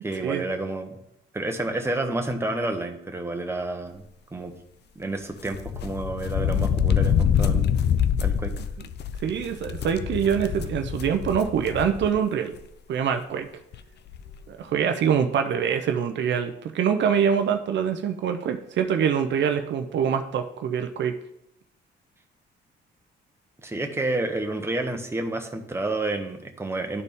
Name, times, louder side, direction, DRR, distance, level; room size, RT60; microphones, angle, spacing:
voice 1, 0.0-1.0 1.3-4.0 4.3-4.5 4.9-7.7 8.2-8.5 23.6-27.0, right 2 dB, 10° right, 4 dB, 1.1 m, -29 dB
sound 1, 5.5-12.2 12.5-12.6 13.7-13.8 14.1-14.3, left 8 dB, 60° left, 0.5 m, -25 dB
voice 2, 9.2-12.5 12.9-13.5 14.5-21.1, right 7 dB, 65° right, 6 dB, 0.6 m, -24 dB
12.0 x 4.1 x 3.6 m, 0.78 s
cardioid pair, 90°, 20 cm